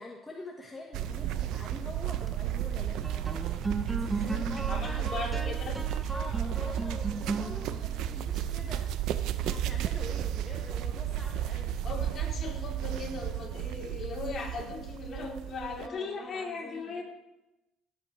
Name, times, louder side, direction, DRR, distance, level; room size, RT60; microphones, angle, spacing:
voice 1, 0.0-3.3 3.9-5.6 6.1-8.8 9.4-11.7 15.8-17.0, left 2 dB, 10° left, -1 dB, 1.4 m, -45 dB
sound 1, 0.9-15.9, right 11 dB, 70° right, 0.6 m, -33 dB
sound 2, 2.1-11.7, right 3 dB, 15° right, 0.9 m, -38 dB
voice 2, 4.7-5.8 11.8-17.0, left 4 dB, 45° left, -1 dB, 3.2 m, -38 dB
16.5 x 7.9 x 3.2 m, 0.96 s
cardioid pair, 105°, 0 cm